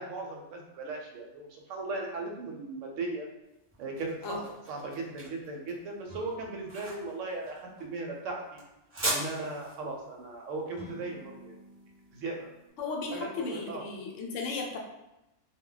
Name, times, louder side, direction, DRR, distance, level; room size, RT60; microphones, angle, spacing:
voice 1, 0.0-3.3 3.8-8.6 9.0-11.6 12.1-12.5 13.1-13.8, right 3 dB, 75° right, 1 dB, 0.9 m, -37 dB
sound 1, 3.4-12.5, right 1 dB, 10° right, 0.8 m, -40 dB
sound 2, 6.1-8.1 10.7-12.9, left 1 dB, 35° right, 0.4 m, -52 dB
voice 2, 12.8-14.8, left 4 dB, 75° left, 1 dB, 0.9 m, -35 dB
2.2 x 2.2 x 3.7 m, 0.93 s
omnidirectional pair, 1.3 m